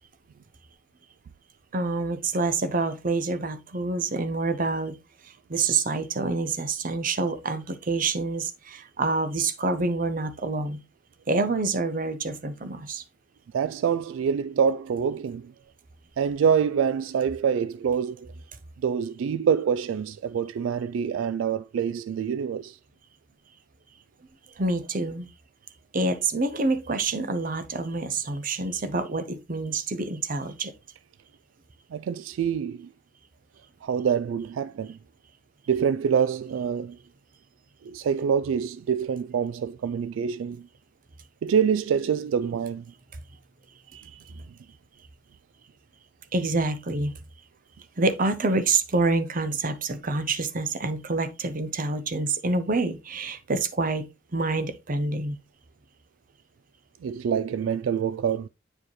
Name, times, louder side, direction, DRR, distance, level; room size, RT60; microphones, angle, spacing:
voice 1, 1.7-5.0 5.5-10.8 11.3-13.0 24.6-25.3 25.9-30.7 46.3-47.1 48.0-55.4, right 3 dB, 45° right, 0.7 m, -27 dB
voice 2, 13.5-15.5 16.2-18.3 18.8-22.8 31.9-32.9 33.8-35.0 35.7-37.0 37.8-40.7 41.4-42.8 43.9-44.4 57.0-58.5, right 7 dB, 80° right, 0.3 m, -26 dB
8.8 x 4.8 x 3.1 m
head